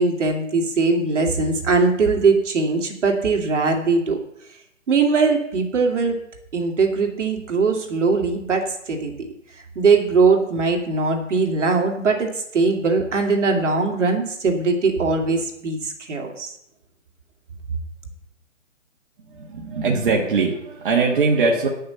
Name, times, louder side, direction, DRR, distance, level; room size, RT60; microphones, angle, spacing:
voice 1, 0.0-4.2 4.9-6.2 6.5-9.3 9.7-16.5, right 4 dB, 65° right, 2 dB, 2.6 m, -20 dB
voice 2, 19.3-21.7, right 4 dB, 40° right, -1 dB, 1.7 m, -21 dB
10.0 x 6.6 x 7.0 m, 0.77 s
hypercardioid pair, 165°, 39 cm